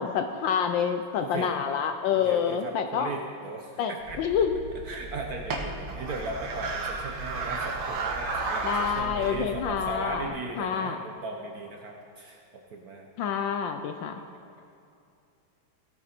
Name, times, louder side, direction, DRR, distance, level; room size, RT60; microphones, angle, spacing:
voice 1, 0.0-3.1 3.8-3.9 4.2-4.6 8.6-10.2 10.6-11.0 13.2-14.1, left 7 dB, 75° left, 7 dB, 1.1 m, -27 dB
voice 2, 1.2-1.6 2.2-4.2 4.8-12.4 12.7-13.1 13.3-13.4 14.1-14.2, right 2 dB, 60° right, 2 dB, 1.0 m, -37 dB
sound 1, 4.0-10.3, right 3 dB, 85° right, 2.1 m, -34 dB
15.5 x 8.9 x 4.3 m, 2.5 s
omnidirectional pair, 2.4 m